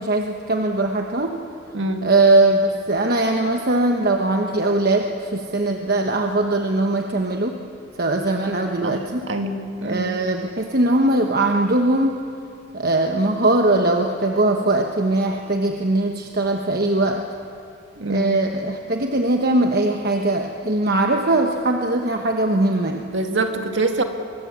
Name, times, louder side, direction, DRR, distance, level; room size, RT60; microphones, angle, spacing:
voice 1, 0.0-1.3 2.0-7.6 7.9-9.3 9.8-12.2 12.7-17.2 18.0-23.0, right 2 dB, 50° right, 3 dB, 1.1 m, -20 dB
voice 2, 1.7-2.1 8.8-9.0 9.3-10.1 18.0-18.3 23.1-24.0, right 2 dB, 65° right, 5 dB, 2.1 m, -24 dB
24.0 x 20.5 x 8.3 m, 2.5 s
head